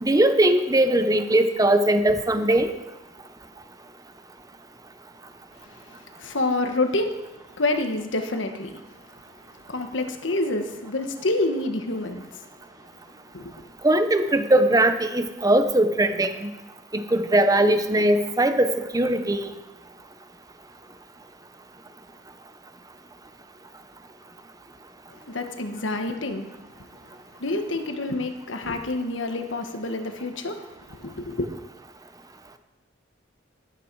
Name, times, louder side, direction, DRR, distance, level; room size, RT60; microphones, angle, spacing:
voice 1, 0.0-2.7 13.8-16.5 17.1-19.4, right 1 dB, 20° right, 9 dB, 0.8 m, -20 dB
voice 2, 5.9-7.2 7.6-8.8 9.7-12.4 13.3-13.5 25.2-26.5 27.4-31.5, left 2 dB, 75° left, 6 dB, 1.4 m, -28 dB
13.0 x 12.0 x 4.7 m, 1.0 s
head